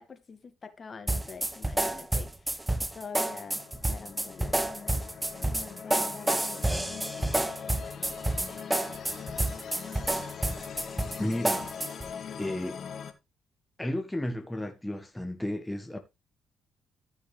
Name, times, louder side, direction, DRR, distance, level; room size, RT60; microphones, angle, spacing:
voice 1, 0.0-2.6 2.9-3.6 3.9-5.0 5.4-6.9 10.7-10.8, left 5 dB, 40° left, 2.1 m, -45 dB
sound 1, 1.1-12.1, right 1 dB, 10° right, 0.9 m, -30 dB
sound 2, 3.1-13.1, left 7 dB, 55° left, 2.0 m, -42 dB
voice 2, 11.2-11.6 12.4-12.8 13.8-16.0, left 1 dB, 10° left, 1.5 m, -33 dB
14.0 x 6.4 x 3.3 m
cardioid pair, 90°, 0 cm